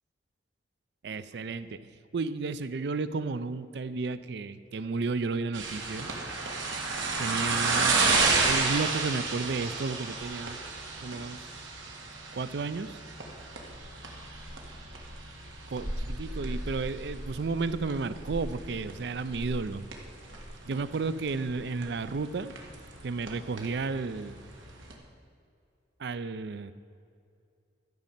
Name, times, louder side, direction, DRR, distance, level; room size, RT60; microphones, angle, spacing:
voice 1, 1.0-6.1 7.2-8.0 8.4-10.6 11.0-11.6 12.3-13.0 15.7-19.9 20.6-22.5 23.0-24.4 26.0-26.7, right 4 dB, 60° right, 14 dB, 0.4 m, -33 dB
sound 1, 5.5-24.9, right 3 dB, 90° right, 1.7 m, -32 dB
13.0 x 5.3 x 7.4 m, 2.4 s
head